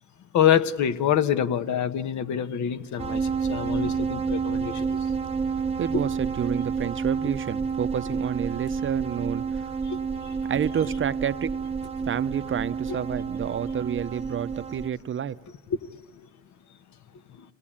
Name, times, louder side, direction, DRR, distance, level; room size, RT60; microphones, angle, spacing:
voice 1, 0.3-5.0 9.9-10.0 10.2-10.4 12.9-13.0, left 9 dB, 70° left, 1.2 m, -25 dB
sound 1, 3.0-14.9, right 5 dB, 20° right, 0.9 m, -29 dB
voice 2, 5.8-9.7 10.5-11.6 12.1-15.4, right 8 dB, 40° right, 0.7 m, -29 dB
26.5 x 18.0 x 8.7 m
cardioid pair, 90°, 30 cm